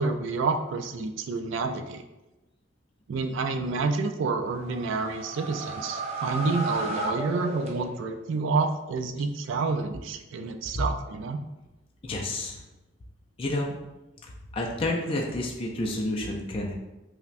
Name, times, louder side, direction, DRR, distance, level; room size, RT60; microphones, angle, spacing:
voice 1, 0.0-2.0 3.1-11.4, right 4 dB, 75° right, 6 dB, 0.3 m, -29 dB
sound 1, 4.4-8.2, right 2 dB, 35° right, 0.6 m, -34 dB
voice 2, 12.0-12.6 13.4-13.8 14.5-16.7, left 1 dB, 30° left, -1 dB, 0.4 m, -29 dB
5.5 x 2.1 x 2.5 m, 1.0 s
head